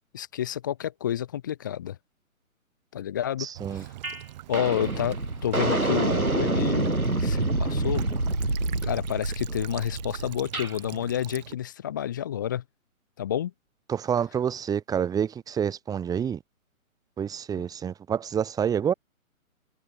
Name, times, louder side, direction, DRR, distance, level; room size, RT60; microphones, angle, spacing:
voice 1, 0.1-2.0 2.9-3.9 4.5-8.1 8.8-12.6 13.2-13.5, left 10 dB, 15° left, 0.6 m, -30 dB
voice 2, 3.4-3.8 13.9-16.4 17.2-18.9, right 8 dB, 10° right, 2.7 m, -28 dB
Child speech kid speaking / Bird vocalization bird call bird song / Stream, 3.5-11.5, right 15 dB, 30° right, 3.8 m, -44 dB
sound 1, 4.0-4.2 4.5-10.7, right 2 dB, 85° right, 4.5 m, -27 dB
figure-of-eight pair, 135°, 42 cm